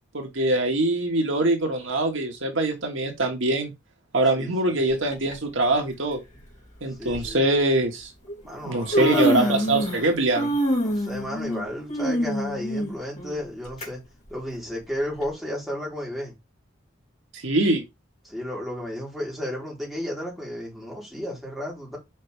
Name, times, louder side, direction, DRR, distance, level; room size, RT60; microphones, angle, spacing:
voice 1, 0.1-3.7 4.1-6.2 6.8-8.1 8.6-10.6 17.3-17.8, right 2 dB, 75° right, 1.7 m, -23 dB
Human voice, 5.1-5.3 6.4-6.5 7.1-7.3 8.3-8.4 8.7-10.1 10.3-13.9 14.3-14.4 15.2-15.3, equal, 40° left, 3.0 m, -25 dB
voice 2, 7.0-7.4 8.4-9.7 10.8-14.0 14.3-16.4 18.2-22.0, left 1 dB, ahead, 3.5 m, -33 dB
6.4 x 5.0 x 3.5 m
head